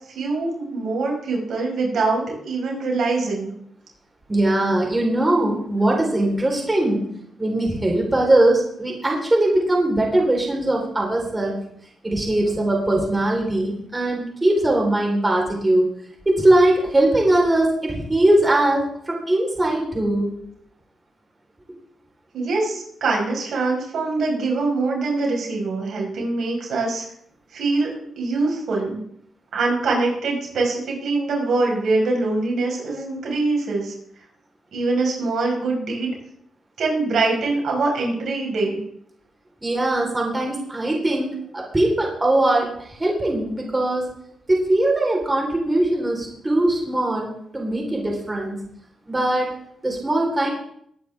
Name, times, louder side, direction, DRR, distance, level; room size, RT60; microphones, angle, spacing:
voice 1, 0.1-3.5 22.3-27.0 27.5-27.9 28.2-29.0 29.5-33.9 34.7-36.1 36.8-38.8, right 3 dB, 70° right, -1 dB, 5.0 m, -23 dB
voice 2, 4.3-7.0 7.4-11.6 12.0-15.9 16.3-20.3 39.6-44.0 44.5-48.6 49.1-49.5 49.8-50.5, right 1 dB, 20° right, -1 dB, 4.1 m, -20 dB
20.5 x 9.5 x 3.6 m, 0.69 s
cardioid pair, 75°, 0 cm